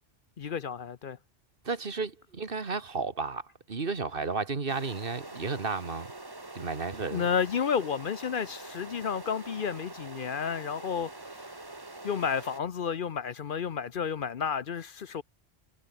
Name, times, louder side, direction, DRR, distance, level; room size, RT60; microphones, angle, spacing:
voice 1, 0.4-1.2 7.1-11.5 12.0-15.2, left 7 dB, 60° left, 0.9 m, -31 dB
voice 2, 1.7-3.4 3.7-6.1 6.6-7.2, right 4 dB, 60° right, 1.9 m, -33 dB
sound 1, 4.7-12.6, right 2 dB, 20° right, 1.5 m, -45 dB
omnidirectional pair, 1.1 m